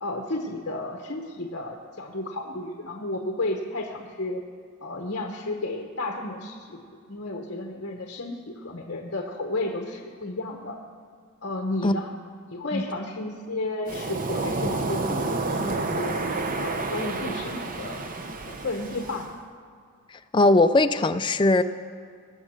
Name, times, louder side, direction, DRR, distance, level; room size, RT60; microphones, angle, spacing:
voice 1, 0.0-4.4 4.8-6.8 7.1-8.3 8.6-10.8 11.4-12.1 12.5-16.2 16.5-18.0 18.4-19.3, left 2 dB, 50° left, 2 dB, 1.0 m, -32 dB
Waves surf, 13.9-19.3, right 3 dB, 40° right, 0.7 m, -29 dB
voice 2, 20.3-21.6, left 2 dB, 20° left, 9 dB, 0.4 m, -19 dB
19.0 x 7.4 x 6.3 m, 2.2 s
head